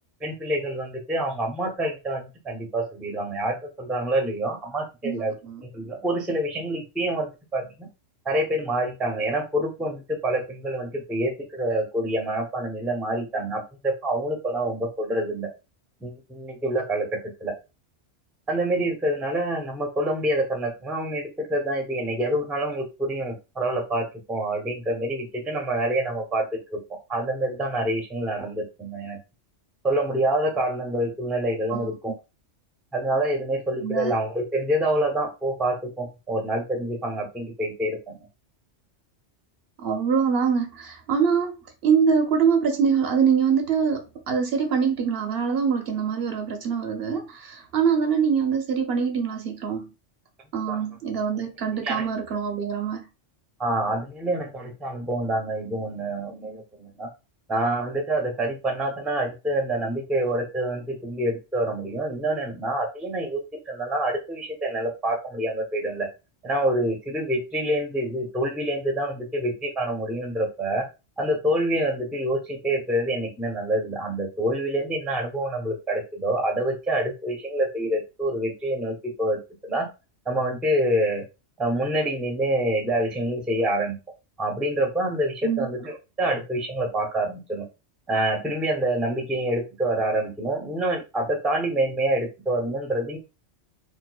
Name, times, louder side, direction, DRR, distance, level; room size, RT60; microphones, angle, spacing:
voice 1, 0.2-5.3 5.6-7.9 8.2-15.5 16.0-17.5 18.5-26.8 27.1-29.2 29.8-32.1 32.9-38.3 50.7-50.8 51.8-52.0 53.6-57.1 57.5-66.1 66.4-70.9 71.2-79.9 80.3-81.2 81.6-84.0 84.4-87.7 88.1-93.2, right 1 dB, ahead, 0.4 m, -27 dB
voice 2, 5.0-5.6 31.7-31.9 33.8-34.1 39.8-41.6 41.8-49.9 50.5-53.1 85.4-85.7, right 6 dB, 60° right, 0.8 m, -24 dB
4.2 x 2.3 x 2.2 m
omnidirectional pair, 1.2 m